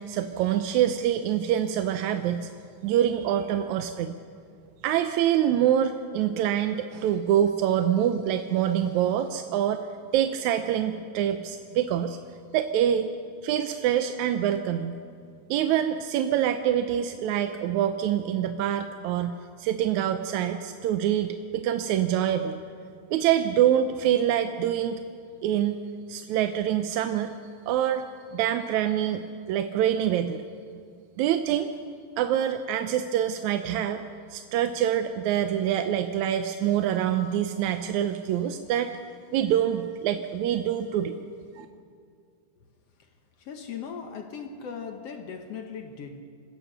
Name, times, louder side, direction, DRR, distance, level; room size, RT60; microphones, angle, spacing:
voice 1, 0.0-2.5 2.8-4.2 4.8-9.9 10.1-12.2 12.5-13.1 13.4-15.0 15.5-22.6 23.1-25.0 25.4-25.8 26.1-27.3 27.7-28.0 28.3-29.2 29.5-30.4 31.2-31.7 32.2-34.0 34.3-38.9 39.3-41.1 41.6-41.7, right 10 dB, 75° right, 1.9 m, -25 dB
voice 2, 43.4-46.2, left 6 dB, 65° left, 1.7 m, -38 dB
26.5 x 16.0 x 6.7 m
omnidirectional pair, 3.8 m